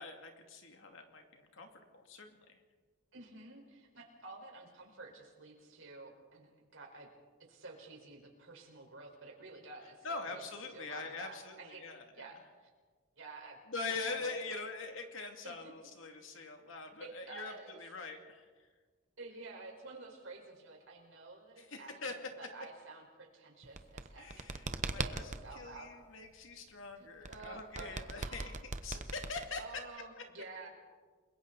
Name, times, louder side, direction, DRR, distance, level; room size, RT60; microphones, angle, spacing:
voice 1, 0.0-1.7 1.9-2.6 10.0-12.3 13.7-18.5 21.6-22.3 24.2-29.6, left 3 dB, 65° left, 4 dB, 2.5 m, -43 dB
voice 2, 3.1-7.1 7.5-10.4 10.7-11.9 12.1-12.7 13.2-13.6 14.0-14.3 15.4-15.7 17.0-17.8 19.2-24.6 24.9-25.9 27.0-28.5 29.6-30.7, right 3 dB, 65° right, 1 dB, 4.7 m, -51 dB
sound 1, 23.6-25.4 27.2-29.8, right 3 dB, 35° right, 0.9 m, -39 dB
29.5 x 22.0 x 4.1 m, 1.5 s
head